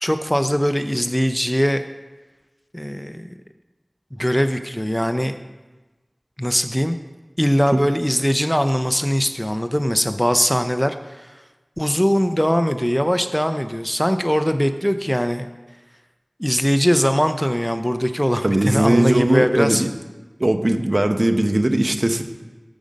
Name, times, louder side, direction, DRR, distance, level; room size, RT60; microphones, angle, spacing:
voice 1, 0.0-1.8 2.7-3.4 4.1-5.3 6.4-7.0 7.4-11.3 11.8-15.5 16.4-19.8, equal, 10° left, 8 dB, 0.5 m, -21 dB
voice 2, 18.4-19.9 20.4-22.2, right 1 dB, 55° right, 6 dB, 0.8 m, -19 dB
13.0 x 5.3 x 5.2 m, 1.2 s
wide cardioid pair, 40°, 0 cm